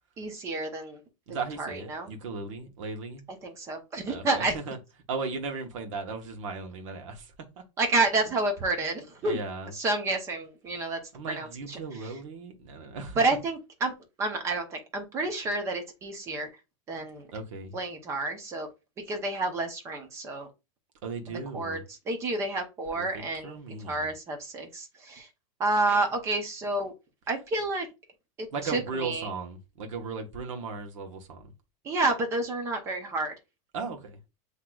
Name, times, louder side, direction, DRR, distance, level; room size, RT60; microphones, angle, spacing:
voice 1, 0.2-1.0 1.6-2.1 3.4-4.5 7.8-9.4 9.7-11.0 11.3-12.1 13.2-13.9 14.2-16.5 16.9-17.3 17.7-18.7 19.1-20.5 21.3-21.8 22.1-23.6 23.8-25.3 25.6-26.9 27.3-27.9 28.4-29.3 31.8-33.3, right 2 dB, 15° right, 0.7 m, -29 dB
voice 2, 1.3-3.2 4.1-4.8 5.1-7.3 9.2-9.7 11.1-13.2 17.3-17.7 21.0-21.8 23.0-24.1 28.5-31.5 33.7-34.2, right 4 dB, 65° right, 1.2 m, -36 dB
7.7 x 2.9 x 2.3 m
supercardioid pair, 180°, 18 cm